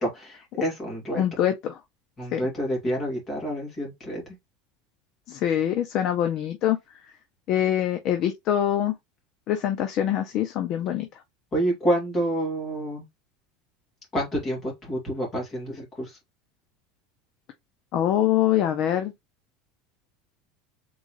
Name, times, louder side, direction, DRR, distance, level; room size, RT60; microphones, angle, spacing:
voice 1, 0.0-1.2 2.2-4.2 11.5-13.0 14.1-16.2, right 1 dB, 20° left, 2.3 m, -28 dB
voice 2, 1.2-1.8 2.3-2.4 5.3-6.8 7.5-8.9 9.5-11.1 17.9-19.1, left 11 dB, 35° left, 0.5 m, -24 dB
3.9 x 3.7 x 3.1 m
supercardioid pair, 175°, 0 cm